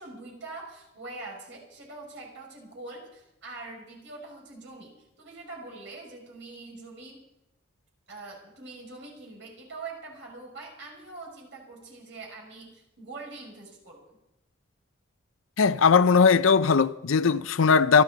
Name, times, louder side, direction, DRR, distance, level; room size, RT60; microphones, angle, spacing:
voice 1, 0.0-7.2 8.1-14.2, right 3 dB, 60° right, 6.0 m, -43 dB
voice 2, 15.6-18.0, left 5 dB, 80° left, 0.6 m, -19 dB
27.5 x 12.0 x 4.0 m
head